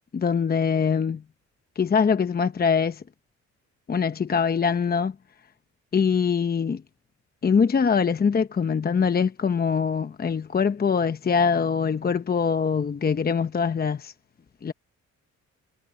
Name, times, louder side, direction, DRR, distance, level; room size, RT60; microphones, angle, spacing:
voice 1, 0.1-1.2 1.8-3.0 3.9-5.1 5.9-6.8 7.4-14.1 14.6-14.7, left 6 dB, 30° left, 0.9 m, -23 dB
cardioid pair, 90°, 30 cm